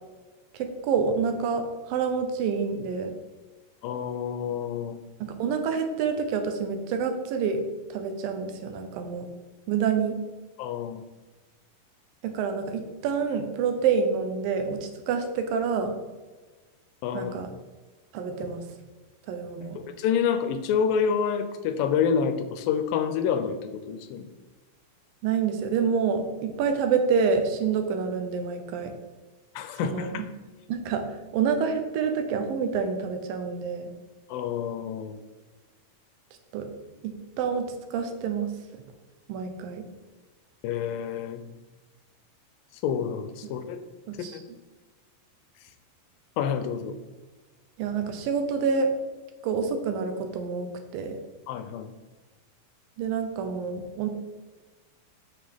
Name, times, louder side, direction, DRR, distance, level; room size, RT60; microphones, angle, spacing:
voice 1, 0.5-3.2 5.2-7.6 7.9-9.3 9.7-10.2 12.2-16.0 17.1-17.5 18.1-18.6 19.3-19.8 25.2-28.9 29.8-30.1 30.7-33.9 36.5-36.7 37.0-38.5 39.3-39.9 44.1-44.4 47.8-48.9 49.4-51.2 53.0-54.1, right 6 dB, 80° right, 6 dB, 2.5 m, -27 dB
voice 2, 3.8-5.0 10.6-11.0 17.0-17.3 19.8-24.3 29.6-30.2 34.3-35.2 40.6-41.4 42.8-43.8 46.4-47.0 51.5-51.9, left 7 dB, 80° left, 9 dB, 2.3 m, -28 dB
7.6 x 6.7 x 3.6 m, 1.3 s
omnidirectional pair, 4.2 m